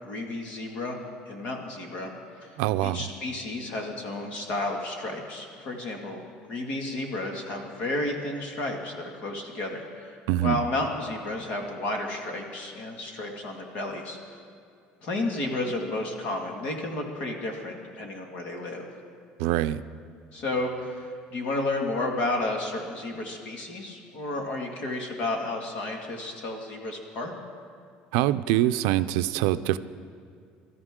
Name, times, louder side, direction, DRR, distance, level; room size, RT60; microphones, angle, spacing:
voice 1, 0.0-1.0 1.3-2.1 2.4-2.6 2.8-6.2 6.5-14.4 15.0-18.9 20.3-27.3, left 2 dB, 45° left, 2 dB, 2.0 m, -32 dB
voice 2, 2.6-3.1 10.3-10.6 19.4-19.8 28.1-29.8, right 14 dB, 85° right, 12 dB, 0.5 m, -24 dB
24.0 x 13.5 x 3.7 m, 2.4 s
cardioid pair, 180°, 3 cm